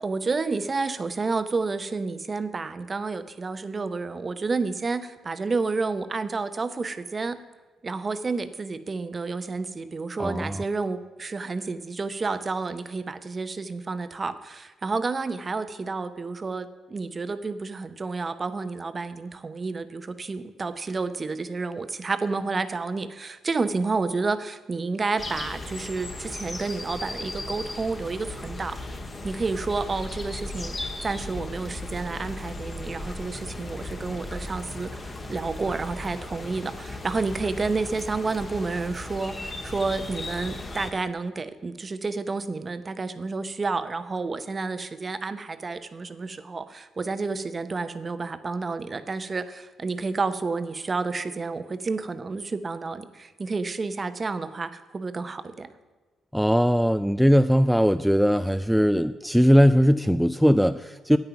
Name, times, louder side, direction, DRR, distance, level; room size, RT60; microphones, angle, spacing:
voice 1, 0.0-7.4 7.8-55.7, right 4 dB, 30° right, 11 dB, 0.8 m, -30 dB
voice 2, 10.2-10.6 56.3-61.2, equal, ahead, 10 dB, 0.3 m, -20 dB
sound 1, 25.2-40.9, left 2 dB, 30° left, 1.5 m, -36 dB
9.1 x 9.0 x 5.9 m, 1.3 s
cardioid pair, 90°, 0 cm